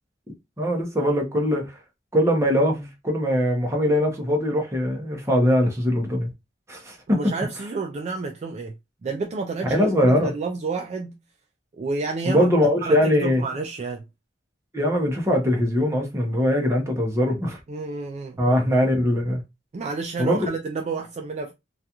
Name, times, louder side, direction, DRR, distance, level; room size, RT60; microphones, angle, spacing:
voice 1, 0.6-1.7 2.1-6.3 6.7-7.2 9.7-10.3 12.2-13.4 14.7-17.6 18.4-19.4 20.2-20.5, equal, 15° right, 0.7 m, -21 dB
voice 2, 7.1-8.7 9.0-11.2 11.8-14.0 17.7-18.4 19.7-21.5, right 4 dB, 35° right, 0.3 m, -30 dB
2.3 x 2.3 x 2.8 m
head